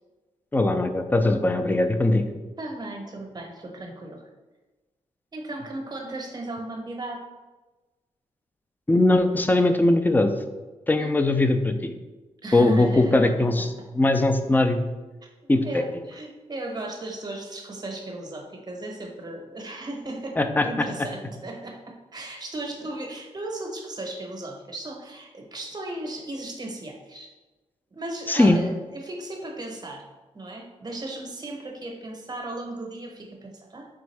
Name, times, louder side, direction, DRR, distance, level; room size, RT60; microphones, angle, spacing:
voice 1, 0.5-2.2 8.9-10.3 10.9-11.9 12.5-14.9 15.5-15.8 20.4-20.9 28.3-28.6, left 2 dB, 15° left, 7 dB, 0.4 m, -20 dB
voice 2, 2.6-4.3 5.3-7.2 10.9-11.2 12.4-13.3 14.1-14.2 15.6-20.4 20.6-27.3 27.9-30.0 30.3-33.9, right 2 dB, 35° right, 2 dB, 0.8 m, -36 dB
3.5 x 3.5 x 3.2 m, 1.2 s
cardioid pair, 70°, 13 cm